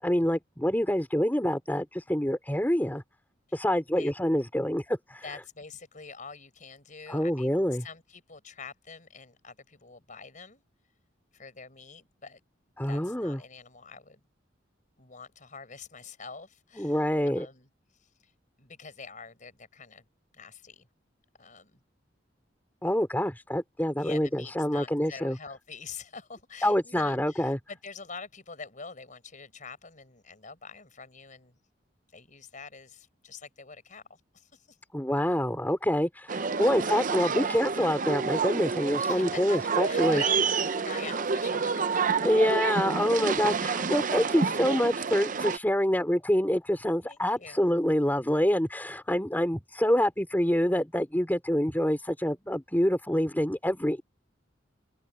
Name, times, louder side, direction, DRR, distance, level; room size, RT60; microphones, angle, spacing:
voice 1, 0.0-3.0 3.5-5.2 7.1-7.9 12.8-13.4 16.8-17.5 22.8-25.4 26.6-27.6 34.9-40.2 42.2-54.0, equal, 10° left, 3.5 m, -26 dB
voice 2, 5.2-10.6 11.3-12.4 12.9-14.2 15.0-17.0 17.3-17.7 17.9-18.3 18.6-20.0 20.3-20.9 21.4-21.8 23.9-31.5 32.1-34.8 39.0-42.0 47.0-47.6, left 5 dB, 45° left, 5.0 m, -45 dB
sound 1, 36.3-45.6, right 5 dB, 45° right, 0.7 m, -29 dB
open air
head